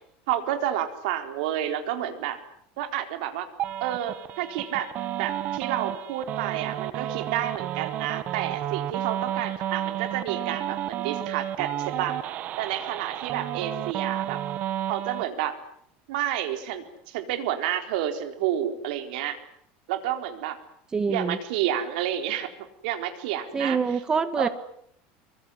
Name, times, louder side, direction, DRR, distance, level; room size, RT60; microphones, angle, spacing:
voice 1, 0.3-2.4 2.8-3.5 3.8-4.9 5.2-12.2 12.6-14.4 14.9-15.6 16.1-19.4 19.9-20.6 21.1-22.5 22.8-23.8 24.4-24.5, right 11 dB, 70° right, 8 dB, 4.0 m, -30 dB
sound 1, 3.6-15.2, right 12 dB, 35° right, 1.0 m, -32 dB
voice 2, 20.9-21.4 23.5-24.5, right 5 dB, 15° right, 13 dB, 1.5 m, -25 dB
23.5 x 23.5 x 9.9 m, 0.69 s
cardioid pair, 175°, 5 cm